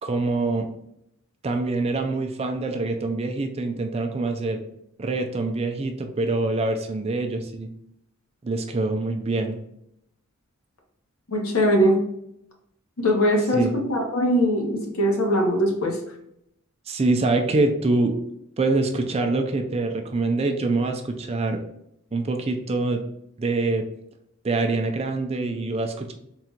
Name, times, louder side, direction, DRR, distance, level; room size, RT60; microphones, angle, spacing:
voice 1, 0.0-0.7 1.4-4.6 5.0-7.7 8.4-9.6 13.5-13.7 16.9-18.1 18.6-21.6 22.1-23.0 23.4-23.8 24.4-26.1, right 3 dB, 30° right, 5 dB, 0.4 m, -25 dB
voice 2, 11.3-12.0 13.0-13.6 13.9-16.0, equal, 70° left, 1 dB, 1.0 m, -21 dB
3.7 x 2.3 x 4.4 m, 0.77 s
head